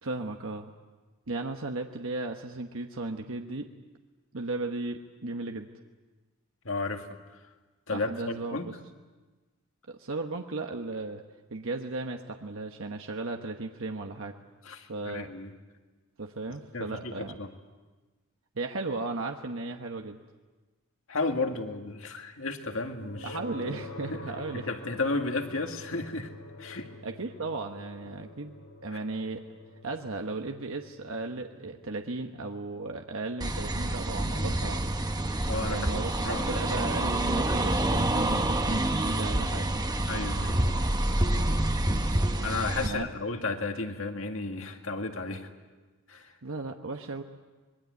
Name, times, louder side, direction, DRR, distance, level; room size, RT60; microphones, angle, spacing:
voice 1, 0.0-0.7 1.3-3.7 4.3-5.7 7.9-8.8 9.9-11.2 11.5-14.3 14.9-15.3 16.2-17.4 18.5-20.2 23.2-24.7 27.0-28.5 28.8-29.4 29.8-34.8 35.7-39.7 42.8-43.1 46.4-47.2, right 3 dB, 65° right, 4 dB, 1.1 m, -35 dB
voice 2, 6.6-7.1 7.9-8.7 14.7-15.5 16.7-17.1 17.4-17.5 21.1-23.4 24.1-24.2 24.5-26.3 26.6-26.9 35.5-37.1 37.5-37.6 40.1-40.6 42.4-45.5 46.1-46.3, left 3 dB, 60° left, 4 dB, 2.2 m, -33 dB
sound 1, 23.0-37.9, left 1 dB, 85° left, 2.5 m, -47 dB
sound 2, 33.4-42.9, right 1 dB, 20° right, 1.1 m, -27 dB
25.0 x 21.5 x 8.3 m, 1.3 s
head